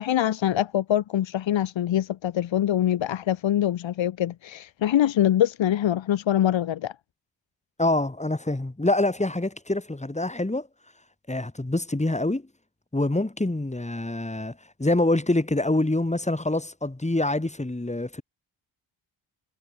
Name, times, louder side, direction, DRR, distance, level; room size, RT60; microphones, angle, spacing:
voice 1, 0.0-6.9, left 11 dB, 65° left, 1.8 m, -24 dB
voice 2, 7.8-10.7 11.3-12.4 12.9-18.2, left 2 dB, 15° left, 6.2 m, -25 dB
supercardioid pair, 50°, 48 cm